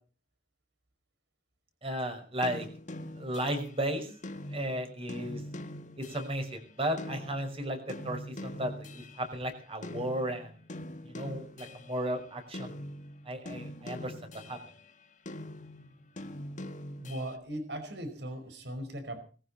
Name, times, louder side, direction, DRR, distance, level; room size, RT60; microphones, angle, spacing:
voice 1, 1.8-2.7 3.2-4.1 4.5-5.4 6.0-10.5 11.0-12.7 13.3-14.6, right 1 dB, 35° right, 6 dB, 5.8 m, -34 dB
sound 1, 2.4-9.6 9.8-12.1 12.5-14.8 15.3-17.4, left 1 dB, 45° left, 1.7 m, -43 dB
voice 2, 17.0-19.2, right 1 dB, 70° right, 8 dB, 5.3 m, -38 dB
20.5 x 15.0 x 4.4 m, 0.39 s
head